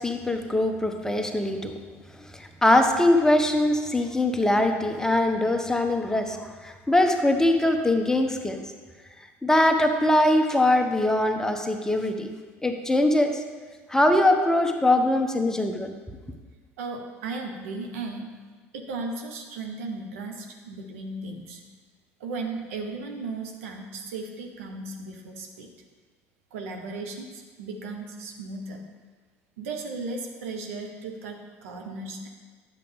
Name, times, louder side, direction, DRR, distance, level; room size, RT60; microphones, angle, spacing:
voice 1, 0.0-1.8 2.3-8.6 9.4-12.3 12.6-13.4 13.9-15.9, left 1 dB, 5° left, 5 dB, 0.9 m, -22 dB
voice 2, 16.8-18.3 18.7-21.6 22.2-25.7 26.5-28.8 29.6-32.3, right 3 dB, 75° right, 2 dB, 1.1 m, -36 dB
9.7 x 7.1 x 3.6 m, 1.4 s
hypercardioid pair, 70°, 8 cm